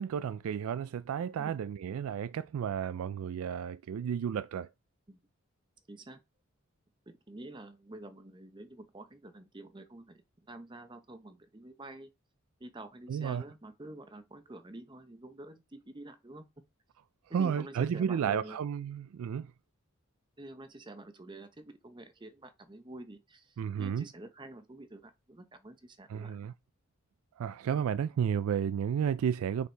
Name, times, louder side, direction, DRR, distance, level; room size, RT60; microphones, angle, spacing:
voice 1, 0.0-4.7 13.1-13.4 17.3-19.5 23.6-24.0 26.1-26.5 27.4-29.7, right 8 dB, 75° right, 0.3 m, -32 dB
voice 2, 5.9-6.2 7.1-10.2 10.5-12.1 12.6-16.4 17.3-18.6 20.4-26.5, right 1 dB, 20° right, 0.7 m, -48 dB
6.8 x 4.6 x 3.3 m
head